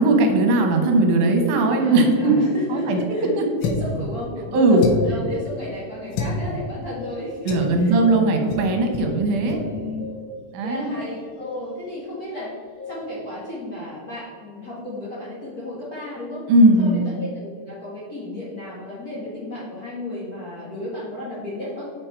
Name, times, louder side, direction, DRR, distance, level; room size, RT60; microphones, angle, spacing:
voice 1, 0.0-3.0 3.4-3.5 4.5-4.9 7.5-9.6 10.5-11.0 16.5-17.1, right 2 dB, 80° right, 3 dB, 2.5 m, -18 dB
voice 2, 1.8-3.3 3.6-8.0 9.5-10.0 10.6-12.5 12.9-16.4 16.8-21.9, left 1 dB, 40° left, -7 dB, 1.5 m, -34 dB
sound 1, 3.6-4.0 4.8-5.2 6.1-6.4 7.5-7.7 8.5-8.7 8.9-9.1 9.5-9.6, left 4 dB, 85° left, 1.2 m, -27 dB
sound 2, 5.6-5.7 6.5-7.5 8.1-9.0 9.5-10.5 10.9-11.9 12.3-13.3, left 2 dB, 60° left, 2.8 m, -39 dB
6.5 x 6.3 x 4.4 m, 2.1 s
omnidirectional pair, 3.6 m